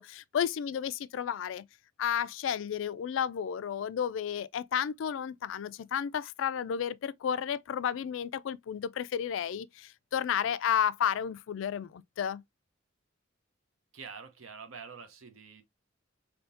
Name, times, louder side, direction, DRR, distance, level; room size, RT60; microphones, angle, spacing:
voice 1, 0.0-1.7 2.0-12.4, left 8 dB, 75° left, 0.3 m, -32 dB
voice 2, 13.9-15.6, right 6 dB, 85° right, 0.7 m, -46 dB
3.5 x 2.7 x 2.5 m
head